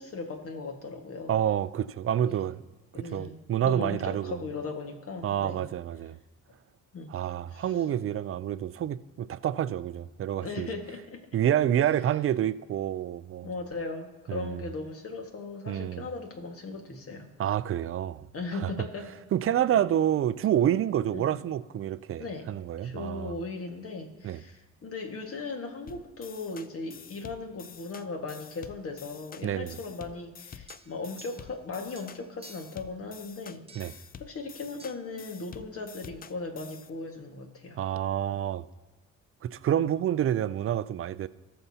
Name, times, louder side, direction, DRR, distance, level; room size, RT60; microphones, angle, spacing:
voice 1, 0.0-1.4 2.3-2.4 2.9-3.4 3.6-5.7 6.9-7.1 7.5-7.7 10.3-11.2 13.4-17.3 18.3-19.1 19.7-19.8 21.1-21.3 22.2-22.5 22.8-37.8, left 3 dB, 50° left, 1.7 m, -38 dB
voice 2, 1.3-2.6 2.9-4.4 5.2-6.1 7.1-10.8 11.3-13.5 14.3-14.6 15.7-16.0 17.4-18.3 18.5-18.7 19.3-23.3 24.2-24.4 29.4-29.8 33.8-33.9 37.8-38.6 39.4-41.3, right 10 dB, 45° right, 0.4 m, -28 dB
sound 1, 25.9-36.9, left 7 dB, 30° left, 0.4 m, -48 dB
sound 2, 30.7-31.7 31.9-32.8 33.7-34.1 34.8-35.0, right 3 dB, 20° right, 1.0 m, -52 dB
18.0 x 6.9 x 2.8 m
cardioid pair, 90°, 30 cm